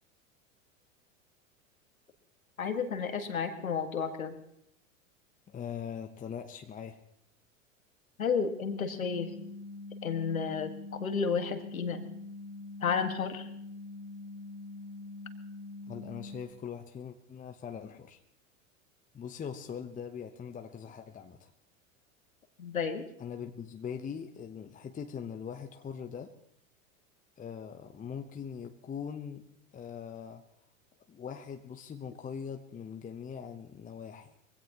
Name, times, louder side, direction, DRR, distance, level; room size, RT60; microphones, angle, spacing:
voice 1, 2.6-4.3 8.2-9.3 10.0-12.0 12.8-13.5 22.6-23.0, left 6 dB, 90° left, 7 dB, 1.9 m, -32 dB
voice 2, 5.5-7.0 15.9-18.2 19.1-21.5 23.2-26.3 27.4-29.5 29.7-30.4 31.1-34.3, left 7 dB, 20° left, 5 dB, 0.9 m, -41 dB
sound 1, 8.9-16.4, left 2 dB, 45° left, 2.2 m, -44 dB
23.0 x 16.5 x 3.0 m, 0.74 s
hypercardioid pair, 90°, 40 cm